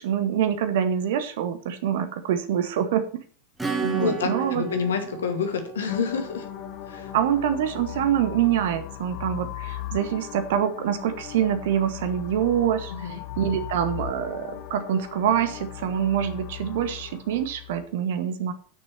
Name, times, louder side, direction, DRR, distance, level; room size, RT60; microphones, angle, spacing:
voice 1, 0.0-3.0 3.8-4.6 7.1-18.5, right 9 dB, 55° right, 10 dB, 1.3 m, -25 dB
Acoustic guitar / Strum, 3.6-7.9, right 4 dB, 10° right, 2.1 m, -34 dB
voice 2, 4.0-6.5 6.9-7.1 12.9-13.2, left 6 dB, 65° left, 6 dB, 2.4 m, -28 dB
sound 1, 5.9-17.8, left 13 dB, 40° left, 1.1 m, -38 dB
9.3 x 6.5 x 6.7 m, 0.40 s
figure-of-eight pair, 90°, 0 cm